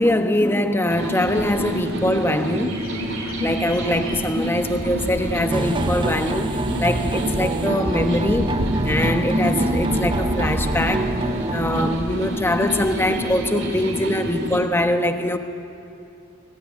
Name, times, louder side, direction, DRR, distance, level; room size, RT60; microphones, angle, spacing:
voice 1, 0.0-2.9 3.4-11.2 11.5-15.4, left 1 dB, 10° left, 1.2 m, -23 dB
Bird, 0.8-14.6, equal, 85° right, 6.6 m, -33 dB
sound 1, 0.9-14.6, right 1 dB, 60° right, 2.6 m, -28 dB
sound 2, 5.5-12.0, right 2 dB, 25° right, 0.6 m, -26 dB
29.0 x 20.5 x 9.9 m
head